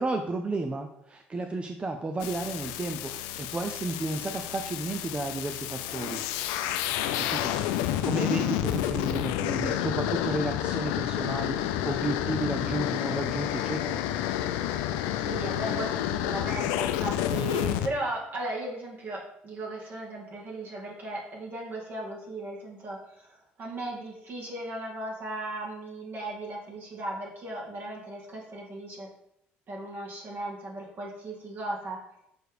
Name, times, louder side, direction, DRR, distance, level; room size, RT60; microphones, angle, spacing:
voice 1, 0.0-6.2 7.2-14.0, right 2 dB, 25° right, 5 dB, 0.7 m, -33 dB
sound 1, 2.2-17.9, left 11 dB, 85° left, 0.5 m, -30 dB
voice 2, 15.0-29.1 29.7-32.0, right 1 dB, 45° right, -3 dB, 2.3 m, -36 dB
6.3 x 4.7 x 5.1 m, 0.78 s
supercardioid pair, 80°, 4 cm